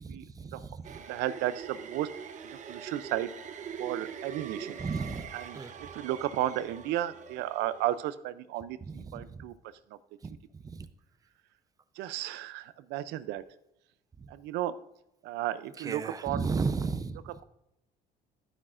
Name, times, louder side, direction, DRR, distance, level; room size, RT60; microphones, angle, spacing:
voice 1, 0.0-1.0 4.8-5.3 5.5-5.7 8.9-9.4 15.8-17.2, right 4 dB, 20° right, 11 dB, 0.5 m, -34 dB
sound 1, 0.8-8.1, right 7 dB, 45° right, 0.8 m, -43 dB
voice 2, 1.1-2.1 2.7-3.3 3.8-4.8 5.3-5.6 5.9-9.5 12.0-13.4 14.3-14.7 15.2-16.5 17.3-17.4, right 13 dB, 85° right, 14 dB, 0.4 m, -33 dB
10.0 x 9.6 x 2.5 m, 0.86 s
cardioid pair, 110°, 17 cm